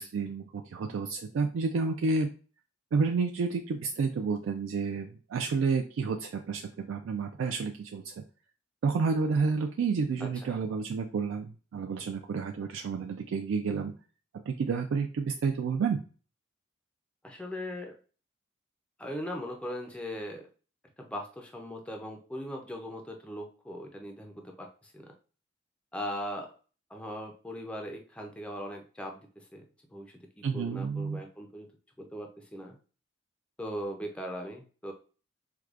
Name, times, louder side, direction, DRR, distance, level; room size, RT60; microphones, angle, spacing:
voice 1, 0.0-2.3 2.9-8.1 8.8-13.9 14.5-16.0 30.4-31.2, right 4 dB, 75° right, 3 dB, 0.3 m, -30 dB
voice 2, 10.2-10.6 17.2-17.9 19.0-20.5 21.0-25.1 25.9-26.5 26.9-29.6 29.9-30.1 30.5-31.7 32.0-32.8 33.6-34.9, equal, 5° left, 2 dB, 0.4 m, -39 dB
4.7 x 2.2 x 2.4 m, 0.38 s
head